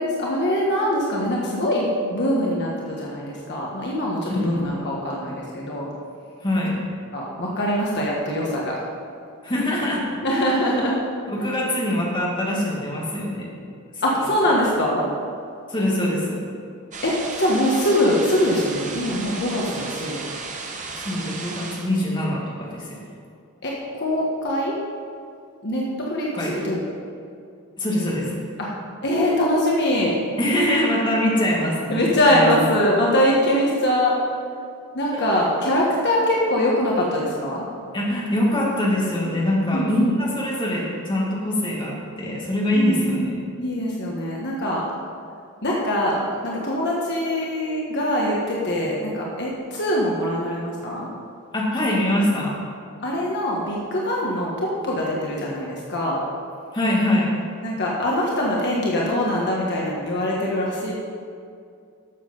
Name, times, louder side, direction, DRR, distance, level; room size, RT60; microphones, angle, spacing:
voice 1, 0.0-5.9 7.1-8.7 10.2-11.0 11.4-11.5 14.0-15.0 17.0-20.2 23.6-24.8 25.6-26.8 28.6-28.7 29.0-30.1 31.9-34.1 34.9-37.6 39.7-40.2 42.7-43.3 43.6-44.8 45.6-51.1 53.0-56.2 57.6-60.9, left 1 dB, 50° left, -3 dB, 1.4 m, -23 dB
voice 2, 4.3-4.7 6.4-6.8 9.4-10.1 11.3-13.5 15.7-16.4 21.0-23.0 26.4-26.6 27.8-28.4 30.4-32.5 35.1-35.4 37.9-43.3 51.5-52.5 56.7-57.3, left 1 dB, 20° left, -4 dB, 2.3 m, -23 dB
sound 1, 16.9-21.9, right 4 dB, 35° right, 1.2 m, -34 dB
12.5 x 7.3 x 5.4 m, 2.4 s
head